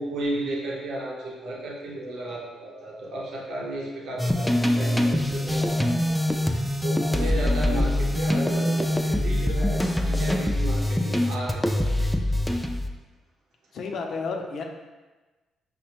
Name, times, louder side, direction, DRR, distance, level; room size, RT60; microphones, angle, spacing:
voice 1, 0.0-5.9 6.4-12.4, right 2 dB, 70° right, -4 dB, 0.7 m, -34 dB
sound 1, 4.2-12.9, left 1 dB, 5° left, 0.3 m, -24 dB
voice 2, 7.7-8.2 13.7-14.6, left 4 dB, 65° left, 3 dB, 0.5 m, -32 dB
4.9 x 2.1 x 2.9 m, 1.2 s
cardioid pair, 90°, 0 cm